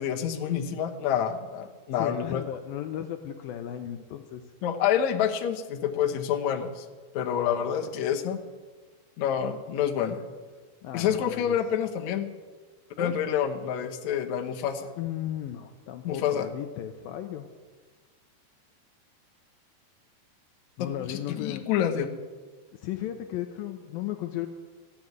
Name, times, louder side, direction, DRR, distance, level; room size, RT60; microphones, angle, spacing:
voice 1, 0.0-2.4 4.6-6.9 7.1-8.4 9.2-10.2 10.9-12.3 13.0-14.9 16.0-16.5 20.8-22.1, left 9 dB, 75° left, 4 dB, 1.7 m, -28 dB
voice 2, 1.9-4.4 10.8-11.6 13.0-13.2 15.0-17.5 20.8-21.6 22.7-24.5, left 11 dB, 90° left, 6 dB, 2.0 m, -35 dB
14.5 x 8.7 x 9.5 m, 1.4 s
omnidirectional pair, 4.9 m